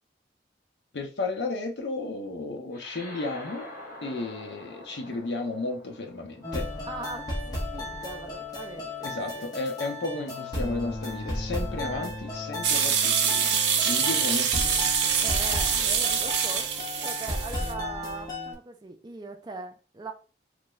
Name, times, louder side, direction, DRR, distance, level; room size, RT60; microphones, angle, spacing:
voice 1, 0.9-3.7 4.0-6.7 9.0-13.5 13.8-14.9, left 3 dB, 80° left, 0.6 m, -33 dB
sound 1, 2.7-7.5, left 1 dB, 50° left, 0.9 m, -46 dB
sound 2, 6.4-18.5, left 1 dB, 20° left, 0.6 m, -34 dB
voice 2, 6.9-9.4 15.2-16.7 17.0-20.1, right 3 dB, 25° right, 0.4 m, -40 dB
sound 3, 12.6-17.7, right 7 dB, 80° right, 0.5 m, -25 dB
2.5 x 2.3 x 3.0 m
head